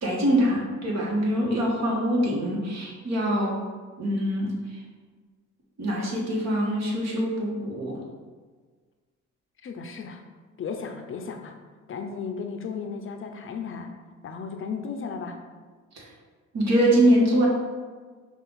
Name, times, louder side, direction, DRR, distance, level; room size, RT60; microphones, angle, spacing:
voice 1, 0.0-3.6 4.0-4.8 5.8-8.0 15.9-16.1 16.5-17.5, right 1 dB, 60° right, -3 dB, 1.3 m, -24 dB
voice 2, 9.6-10.2 10.6-11.6 11.9-13.9 14.2-15.4, left 5 dB, 45° left, 5 dB, 0.5 m, -35 dB
5.5 x 2.4 x 3.9 m, 1.5 s
cardioid pair, 90°, 30 cm